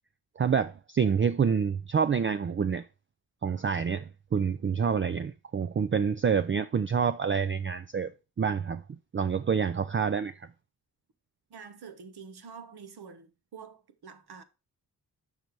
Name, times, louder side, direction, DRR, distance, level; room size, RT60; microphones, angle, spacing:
voice 1, 0.4-2.8 3.4-8.1 8.4-8.8 9.1-10.5, right 6 dB, 30° right, 0.4 m, -27 dB
voice 2, 11.5-14.4, right 6 dB, 75° right, 1.2 m, -47 dB
6.4 x 5.3 x 4.6 m
cardioid pair, 70°, 40 cm